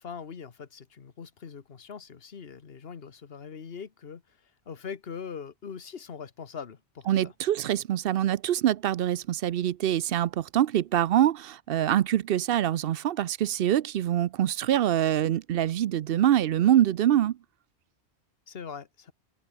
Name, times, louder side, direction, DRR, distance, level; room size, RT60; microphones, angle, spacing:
voice 1, 0.0-4.4 4.7-7.3 18.5-19.1, left 6 dB, 60° left, 1.5 m, -42 dB
voice 2, 7.1-17.4, right 11 dB, 65° right, 0.7 m, -25 dB
omnidirectional pair, 1.1 m